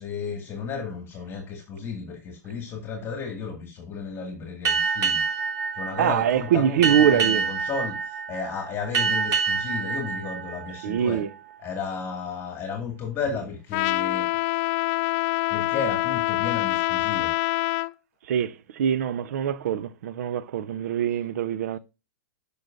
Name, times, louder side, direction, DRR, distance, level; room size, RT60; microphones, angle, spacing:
voice 1, 0.0-5.2 5.7-11.2 11.6-14.3 15.5-17.3, left 5 dB, 25° left, 2.1 m, -33 dB
Boat Water vehicle, 4.7-11.7, right 5 dB, 35° right, 2.6 m, -27 dB
voice 2, 6.0-7.4 10.8-11.3 18.3-21.8, right 9 dB, 65° right, 0.6 m, -24 dB
Trumpet, 13.7-17.9, left 21 dB, 45° left, 0.3 m, -25 dB
12.0 x 5.5 x 2.6 m
hypercardioid pair, 115°, 9 cm